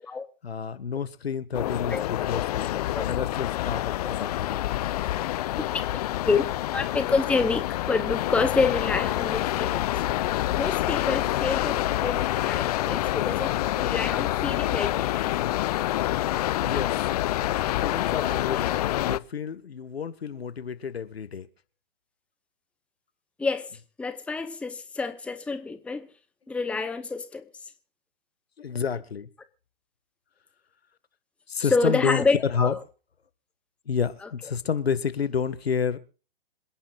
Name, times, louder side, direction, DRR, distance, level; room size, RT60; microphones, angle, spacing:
voice 1, 0.4-2.7 3.1-4.8 16.6-16.9 17.6-21.5 28.6-29.3 31.5-32.2 32.5-32.7 33.9-36.0, left 6 dB, 75° left, 1.7 m, -30 dB
sound 1, 1.5-19.2, left 14 dB, 40° left, 0.5 m, -27 dB
voice 2, 1.9-2.4 2.9-3.1 6.3-6.5 6.7-9.9 10.6-15.1 23.4-23.7 24.0-26.1 26.5-27.4 31.6-32.8 34.2-34.3, left 4 dB, 5° left, 0.8 m, -28 dB
27.0 x 10.5 x 2.5 m
figure-of-eight pair, 120°, 31 cm